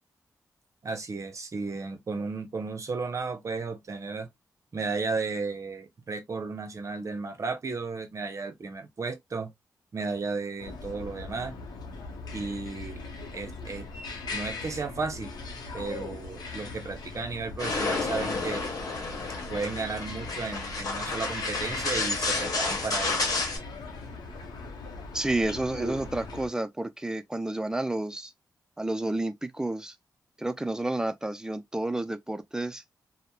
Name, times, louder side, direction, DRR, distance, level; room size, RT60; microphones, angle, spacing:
voice 1, 0.8-4.3 4.7-9.5 9.9-11.6 12.3-13.0 13.3-13.9 14.3-15.3 15.7-18.6 19.5-23.3 25.7-26.4, right 4 dB, 50° right, 0.7 m, -34 dB
sound 1, 10.6-26.5, left 3 dB, 80° left, 0.7 m, -40 dB
sound 2, 17.6-23.6, left 3 dB, 60° left, 1.0 m, -31 dB
voice 2, 25.1-28.3 28.8-29.9 30.4-32.8, right 2 dB, 10° right, 0.4 m, -30 dB
2.9 x 2.0 x 2.2 m
cardioid pair, 65°, 7 cm